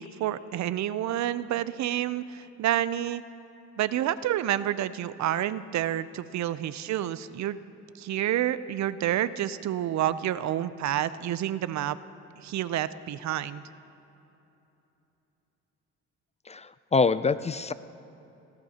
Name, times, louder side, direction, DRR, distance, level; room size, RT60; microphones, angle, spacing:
voice 1, 0.0-3.2 3.8-7.6 8.0-12.0 12.4-13.6, right 12 dB, 65° right, 15 dB, 0.6 m, -29 dB
voice 2, 16.5-17.7, left 4 dB, 25° left, 14 dB, 0.3 m, -25 dB
23.0 x 17.5 x 2.9 m, 3.0 s
cardioid pair, 90°, 30 cm